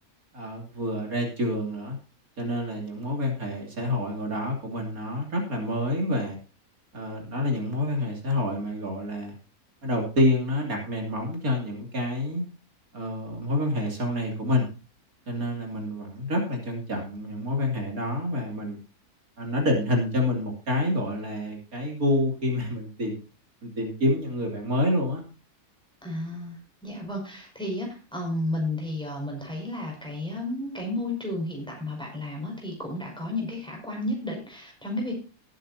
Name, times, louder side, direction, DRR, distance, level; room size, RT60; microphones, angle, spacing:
voice 1, 0.3-2.0 2.4-6.4 6.9-9.3 9.8-12.4 12.9-14.7 15.3-18.8 19.4-23.2 23.6-25.2, left 1 dB, 65° right, 1 dB, 3.4 m, -27 dB
voice 2, 26.0-35.1, left 1 dB, 5° left, -1 dB, 5.7 m, -32 dB
19.0 x 9.1 x 2.8 m, 0.33 s
omnidirectional pair, 1.6 m